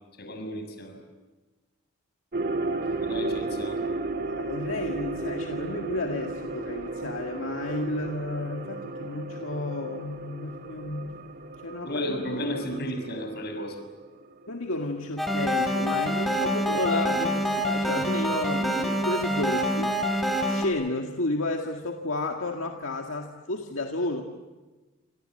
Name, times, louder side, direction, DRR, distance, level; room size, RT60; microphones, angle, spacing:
voice 1, 0.2-1.0 3.0-3.9 11.9-13.8, equal, 55° left, 5 dB, 6.7 m, -33 dB
sound 1, 2.3-14.6 14.9-15.0, right 2 dB, 50° right, 1.7 m, -34 dB
voice 2, 4.1-11.2 11.6-12.4 12.7-12.9 14.5-20.1 20.4-24.2, left 2 dB, 80° left, 2 dB, 2.0 m, -32 dB
sound 2, 15.2-20.7, equal, ahead, 4.0 m, -26 dB
28.5 x 26.5 x 7.9 m, 1.2 s
head